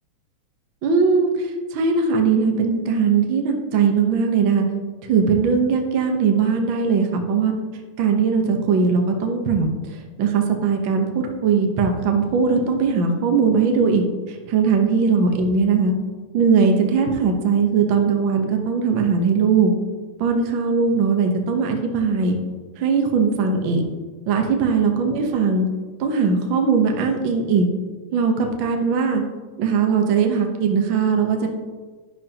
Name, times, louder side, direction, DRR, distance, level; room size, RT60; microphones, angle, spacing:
voice 1, 0.8-4.6 5.0-7.5 8.0-15.9 16.3-19.7 20.2-22.4 22.8-23.8 24.3-25.7 26.0-27.7 28.1-29.2 29.6-31.5, right 5 dB, 65° right, 3 dB, 1.2 m, -20 dB
11.0 x 10.5 x 2.9 m, 1.4 s
omnidirectional pair, 3.7 m